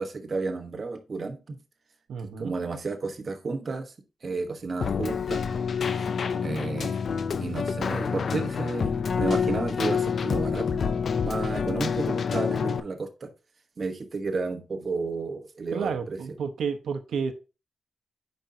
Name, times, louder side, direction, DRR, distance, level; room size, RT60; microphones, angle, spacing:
voice 1, 0.0-1.6 2.4-3.9 4.2-5.4 5.9-6.1 6.4-7.0 7.3-10.8 11.2-13.3 13.8-16.2, right 3 dB, 35° right, 5 dB, 1.0 m, -32 dB
voice 2, 2.1-2.5 15.7-17.3, right 6 dB, 85° right, 8 dB, 0.9 m, -31 dB
Keyboard (musical), 4.8-12.8, left 6 dB, 50° left, 0.5 m, -27 dB
9.0 x 5.3 x 2.7 m, 0.31 s
wide cardioid pair, 145°, 0 cm